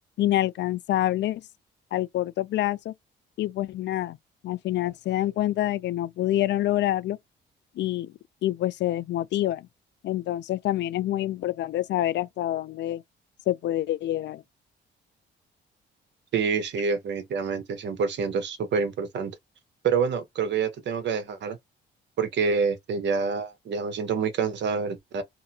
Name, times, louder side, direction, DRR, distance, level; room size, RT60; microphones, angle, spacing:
voice 1, 0.2-1.4 1.9-2.9 3.4-4.2 4.4-7.2 7.8-8.1 8.4-9.7 10.0-13.0 13.5-14.4, left 14 dB, 65° left, 0.4 m, -26 dB
voice 2, 16.3-19.3 19.8-21.6 22.2-25.2, right 5 dB, 65° right, 0.9 m, -27 dB
2.7 x 2.5 x 2.7 m
cardioid pair, 90°, 20 cm